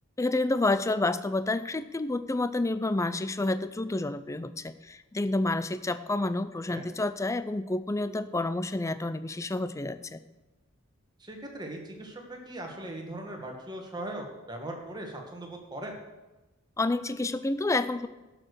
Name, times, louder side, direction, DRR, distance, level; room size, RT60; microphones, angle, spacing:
voice 1, 0.2-10.2 16.8-18.1, left 2 dB, 15° left, 13 dB, 0.4 m, -29 dB
voice 2, 11.2-16.0, right 1 dB, 20° right, 1 dB, 1.8 m, -39 dB
12.0 x 6.5 x 6.6 m, 1.1 s
head